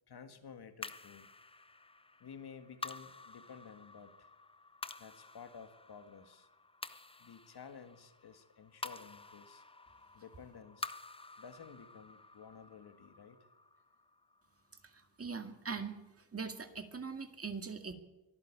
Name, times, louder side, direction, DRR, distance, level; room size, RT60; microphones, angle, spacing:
voice 1, 0.1-1.3 2.2-4.3 5.0-6.5 7.2-9.6 10.1-11.0 11.4-13.4, left 6 dB, 50° left, 8 dB, 1.8 m, -53 dB
sound 1, 0.8-15.3, left 3 dB, 10° left, 0.7 m, -50 dB
voice 2, 14.8-17.9, right 5 dB, 30° right, 6 dB, 2.2 m, -42 dB
23.5 x 13.5 x 8.5 m, 1.0 s
wide cardioid pair, 130°, 48 cm